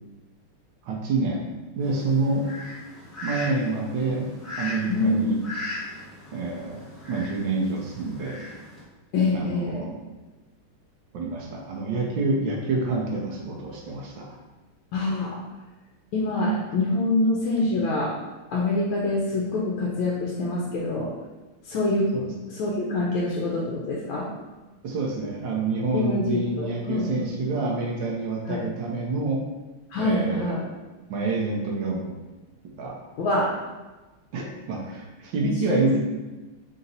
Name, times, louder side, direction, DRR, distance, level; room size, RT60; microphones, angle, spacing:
voice 1, 0.8-1.4 1.8-2.5 3.2-4.3 4.6-5.4 6.3-6.8 7.1-8.4 9.3-10.0 11.1-14.4 22.1-22.3 24.8-29.4 30.0-30.6 31.1-32.2 32.8-33.0 34.3-36.0, right 3 dB, 70° right, -1 dB, 1.2 m, -27 dB
Fowl, 1.8-8.8, left 2 dB, ahead, 0.8 m, -38 dB
voice 2, 4.9-5.3 9.1-9.9 14.9-15.3 16.1-18.1 18.5-21.1 21.6-22.1 22.5-24.3 25.9-27.3 28.5-28.6 29.9-30.7 33.2-33.5 35.4-36.0, left 2 dB, 70° left, -4 dB, 1.3 m, -25 dB
3.9 x 2.7 x 3.9 m, 1.2 s
omnidirectional pair, 2.4 m